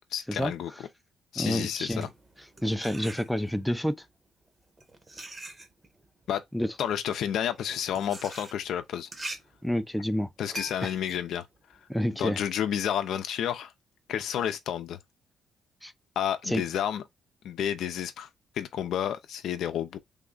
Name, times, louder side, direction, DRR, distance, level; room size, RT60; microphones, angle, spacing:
voice 1, 0.1-0.7 1.3-2.1 6.3-6.4 6.8-9.1 10.4-11.5 12.2-13.7 14.1-15.0 16.2-17.0 17.4-18.3 18.6-20.0, left 10 dB, 75° left, 0.6 m, -30 dB
voice 2, 1.4-2.1 2.6-4.1 6.5-6.7 9.6-10.3 10.8-10.9 11.9-12.4 15.8-15.9 16.5-16.6, equal, 5° left, 0.5 m, -28 dB
sound 1, 1.7-3.7 4.5-12.4, right 1 dB, 25° right, 1.0 m, -44 dB
3.5 x 2.3 x 3.8 m
cardioid pair, 85°, 0 cm